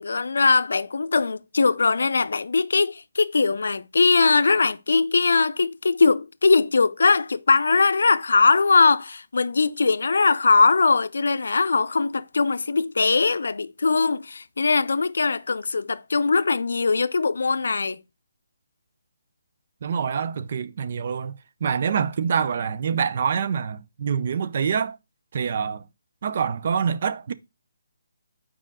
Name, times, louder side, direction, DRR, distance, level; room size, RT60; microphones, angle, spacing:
voice 1, 0.0-18.0, left 4 dB, 80° left, 0.5 m, -21 dB
voice 2, 19.8-21.3 21.6-25.0 25.3-25.8 26.2-27.3, right 7 dB, 45° right, 0.5 m, -25 dB
7.5 x 4.9 x 3.6 m
hypercardioid pair, 165°, 0 cm